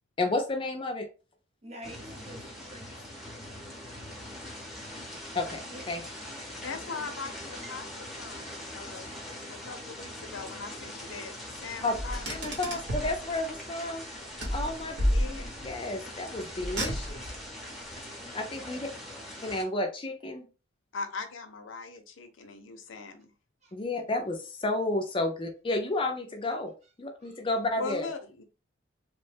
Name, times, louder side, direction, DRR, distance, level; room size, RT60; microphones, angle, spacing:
voice 1, 0.2-1.1 5.3-6.0 11.8-11.9 12.3-14.0 14.5-14.9 15.6-17.2 18.3-18.9 19.4-20.5 23.7-26.7 27.0-28.1, left 2 dB, 25° left, 0.4 m, -31 dB
voice 2, 1.6-2.9 5.7-5.8 6.7-7.6 19.1-19.2 23.6-23.7 27.2-27.4, right 1 dB, 35° right, 0.7 m, -49 dB
sound 1, 1.8-19.6, left 1 dB, ahead, 0.7 m, -42 dB
voice 3, 6.6-9.1 9.5-12.5 13.0-13.1 15.0-15.6 18.8-18.9 20.9-23.3 27.8-28.4, left 4 dB, 75° left, 0.6 m, -40 dB
Car, 11.9-13.2 14.4-15.7 16.6-17.4, equal, 55° right, 1.0 m, -30 dB
3.0 x 2.1 x 3.3 m
head